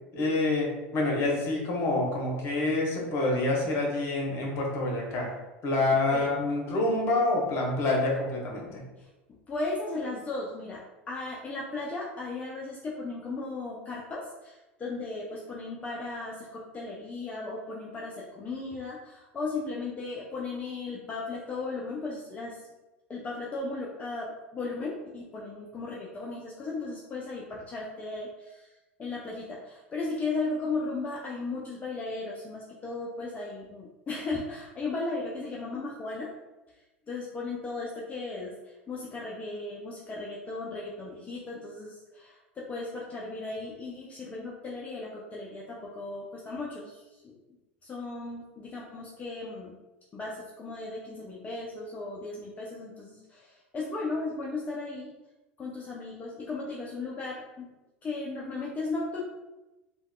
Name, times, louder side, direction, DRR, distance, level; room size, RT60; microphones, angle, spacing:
voice 1, 0.1-5.3 5.6-8.8, left 2 dB, 40° left, -1 dB, 0.9 m, -27 dB
voice 2, 9.5-22.6 23.1-36.3 37.1-47.3 47.8-49.8 50.1-55.1 55.6-57.7 58.0-59.2, left 3 dB, 20° left, -4 dB, 0.5 m, -36 dB
3.3 x 2.2 x 2.2 m, 1.1 s
figure-of-eight pair, 80°, 7 cm